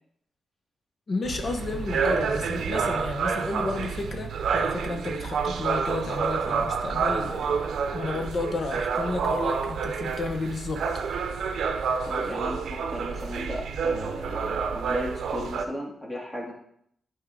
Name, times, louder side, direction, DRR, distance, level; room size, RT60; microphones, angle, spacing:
voice 1, 1.1-10.8, left 3 dB, 45° left, 5 dB, 1.1 m, -32 dB
sound 1, 1.2-15.7, right 5 dB, 80° right, 0.6 m, -28 dB
voice 2, 12.0-16.5, left 1 dB, 15° left, -2 dB, 2.1 m, -35 dB
11.5 x 4.7 x 3.8 m, 0.70 s
wide cardioid pair, 130°, 0 cm